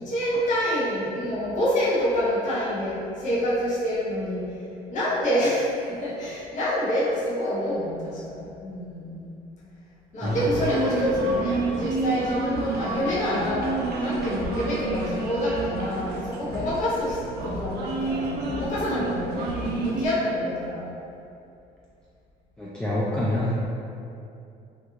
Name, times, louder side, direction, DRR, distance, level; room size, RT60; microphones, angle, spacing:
voice 1, 0.0-4.4 4.9-9.3 10.1-17.2 17.4-20.9, equal, 45° left, -9 dB, 0.8 m, -27 dB
sound 1, 10.2-20.1, right 2 dB, 70° right, 0.5 m, -29 dB
voice 2, 22.6-23.5, left 1 dB, 5° left, -8 dB, 0.3 m, -26 dB
2.5 x 2.4 x 2.9 m, 2.6 s
cardioid pair, 110°, 17 cm